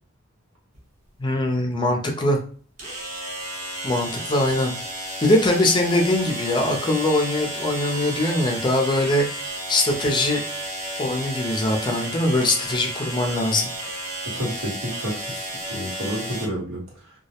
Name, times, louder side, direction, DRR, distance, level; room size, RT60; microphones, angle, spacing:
sound 1, 0.7-0.8 2.8-16.5, right 1 dB, 35° right, 0.7 m, -32 dB
voice 1, 1.2-2.4 3.8-4.7 5.2-10.4 11.0-13.7, left 1 dB, 20° left, 2 dB, 0.4 m, -22 dB
voice 2, 14.3-17.1, equal, 90° right, -4 dB, 1.1 m, -30 dB
2.2 x 2.0 x 2.8 m, 0.43 s
head